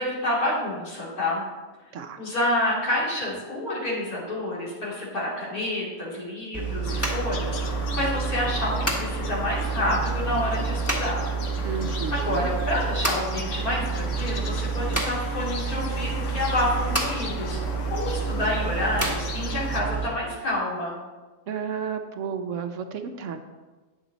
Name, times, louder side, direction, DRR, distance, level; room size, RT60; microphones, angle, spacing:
voice 1, 0.0-1.4 2.2-11.3 12.1-17.6 17.9-21.0, left 1 dB, 90° left, -7 dB, 3.5 m, -28 dB
sound 1, 6.5-20.1, right 4 dB, 10° left, 1.3 m, -29 dB
sound 2, 6.8-19.8, left 3 dB, 60° left, 1.2 m, -37 dB
voice 2, 11.6-12.5 21.5-23.4, right 6 dB, 65° right, 7 dB, 0.9 m, -32 dB
9.9 x 7.3 x 4.0 m, 1.3 s
omnidirectional pair, 1.5 m